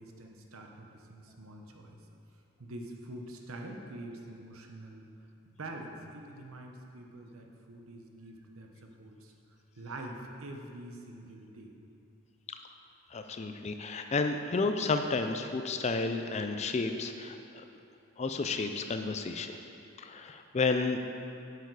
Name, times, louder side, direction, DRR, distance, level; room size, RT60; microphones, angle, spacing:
voice 1, 0.0-2.0 2.6-5.0 5.5-9.3 9.8-11.7, right 1 dB, 70° right, 2 dB, 0.9 m, -45 dB
voice 2, 13.1-17.6 18.2-19.6 20.0-21.0, left 3 dB, 30° left, 7 dB, 0.3 m, -31 dB
7.9 x 6.9 x 4.7 m, 2.6 s
head